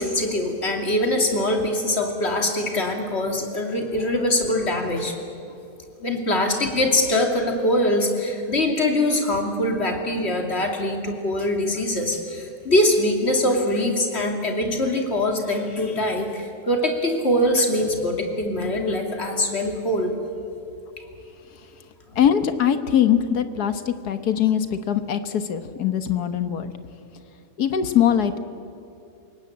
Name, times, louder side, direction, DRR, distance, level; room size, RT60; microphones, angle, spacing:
voice 1, 0.0-5.1 6.0-20.1, left 1 dB, 40° left, 3 dB, 3.0 m, -23 dB
voice 2, 22.1-26.7 27.6-28.4, left 9 dB, 80° left, 10 dB, 1.7 m, -22 dB
28.5 x 17.5 x 8.6 m, 2.8 s
omnidirectional pair, 1.6 m